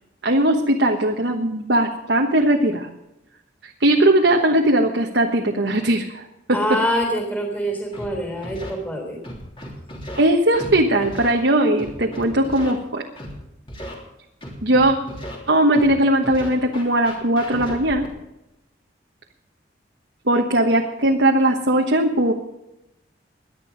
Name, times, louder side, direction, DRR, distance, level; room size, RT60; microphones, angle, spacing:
voice 1, 0.2-2.9 3.6-6.2 6.5-6.6 10.2-13.0 14.6-14.9 15.5-18.0 20.3-22.3, right 1 dB, 75° right, 1 dB, 1.3 m, -19 dB
voice 2, 6.5-9.2, equal, 10° left, 2 dB, 3.6 m, -25 dB
Scratching (performance technique), 7.9-8.1 8.4-8.7 9.2-10.2 10.5-10.7 11.0-11.3 11.8-12.7 13.2-13.3 13.7-13.9 14.4-15.3 15.7-15.9 16.2-18.1, equal, 30° left, 3.3 m, -35 dB
18.5 x 11.5 x 5.2 m, 0.90 s
head